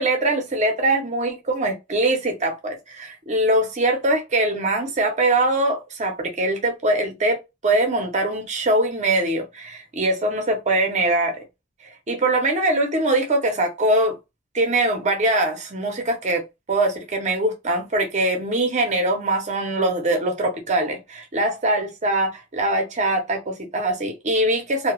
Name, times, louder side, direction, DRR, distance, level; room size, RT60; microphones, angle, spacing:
voice 1, 0.0-11.4 12.1-14.2 14.5-16.4 16.7-24.9, right 1 dB, 35° right, 0.7 m, -22 dB
2.2 x 2.2 x 2.9 m
head